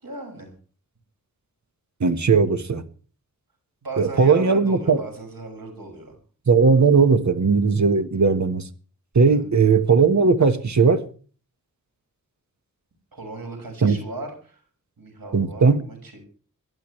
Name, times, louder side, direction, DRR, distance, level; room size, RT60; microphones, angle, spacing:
voice 1, 0.0-0.5 3.8-6.1 9.3-9.5 13.1-14.6 15.0-16.3, right 3 dB, 90° right, 6.2 m, -36 dB
voice 2, 2.0-2.8 4.0-5.0 6.5-8.7 9.1-11.0 13.8-14.0 15.3-15.8, right 5 dB, 55° right, 1.5 m, -18 dB
26.0 x 11.5 x 3.3 m
wide cardioid pair, 90°, 34 cm